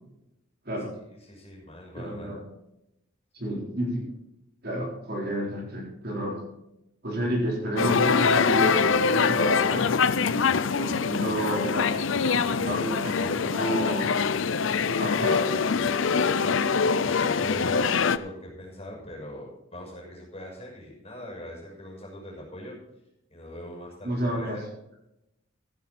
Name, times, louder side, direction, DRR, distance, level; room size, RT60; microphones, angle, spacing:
voice 1, 1.1-2.3 17.0-22.7 23.3-24.6, left 1 dB, 30° left, -2 dB, 6.2 m, -42 dB
voice 2, 2.0-2.5 3.3-4.1 4.6-6.4 7.0-14.1 14.8-15.8 24.0-24.6, right 1 dB, 50° right, -1 dB, 4.1 m, -31 dB
sound 1, 7.8-18.2, left 5 dB, 70° left, 0.6 m, -24 dB
14.5 x 11.0 x 4.3 m, 0.85 s
head